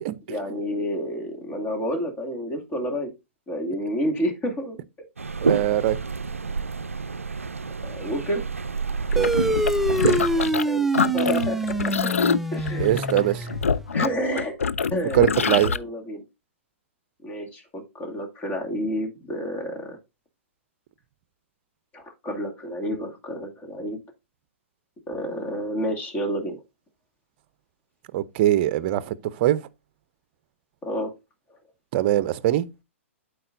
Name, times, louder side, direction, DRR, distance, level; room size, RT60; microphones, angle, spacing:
voice 1, 0.3-3.1 3.5-4.8 7.8-8.4 10.6-12.1 12.5-13.5 13.9-14.6 14.9-15.3 15.6-16.2 17.2-20.0 21.9-24.0 25.1-26.6 30.8-31.1, equal, 25° left, 2.3 m, -30 dB
sound 1, 5.2-10.5, right 4 dB, 90° right, 0.4 m, -28 dB
voice 2, 5.4-6.0 9.1-9.5 10.0-10.2 12.8-13.5 15.1-15.7 28.1-29.6 31.9-32.7, right 13 dB, 45° right, 0.6 m, -22 dB
sound 2, 9.1-10.7 10.9-15.8, left 6 dB, 80° left, 0.5 m, -25 dB
sound 3, 9.2-14.0, right 1 dB, 5° right, 0.4 m, -26 dB
12.5 x 4.6 x 2.6 m
figure-of-eight pair, 115°, 7 cm